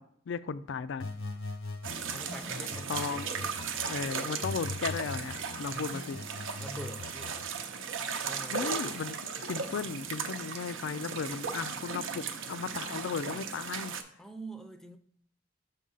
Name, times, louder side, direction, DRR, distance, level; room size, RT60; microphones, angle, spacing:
voice 1, 0.3-1.1 2.9-3.3 3.8-6.2 8.5-13.9, left 5 dB, 70° left, 15 dB, 0.4 m, -36 dB
sound 1, 1.0-4.0 4.4-7.4, left 3 dB, 85° left, 0.9 m, -41 dB
sound 2, 1.8-14.0, right 6 dB, 75° right, 0.7 m, -37 dB
voice 2, 2.1-3.2 6.6-7.4 8.2-8.8 14.2-15.0, right 1 dB, ahead, 7 dB, 0.5 m, -45 dB
6.4 x 3.7 x 5.5 m, 0.65 s
head